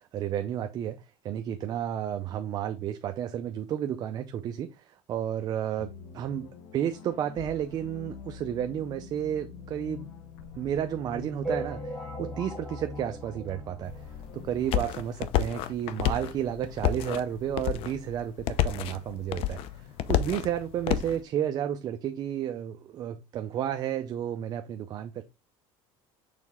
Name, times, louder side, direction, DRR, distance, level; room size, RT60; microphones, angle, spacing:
voice 1, 0.0-10.1 10.6-25.2, right 10 dB, 40° right, 0.5 m, -32 dB
sound 1, 5.8-14.8, left 5 dB, 75° left, 1.1 m, -44 dB
sound 2, 11.4-14.3 14.8-14.9 15.1-15.2 15.5-15.6 16.5-16.6 17.0-17.1, right 2 dB, ahead, 1.1 m, -38 dB
sound 3, 13.9-21.2, left 11 dB, 60° left, 0.6 m, -30 dB
6.7 x 4.0 x 3.6 m
cardioid pair, 150°, 11 cm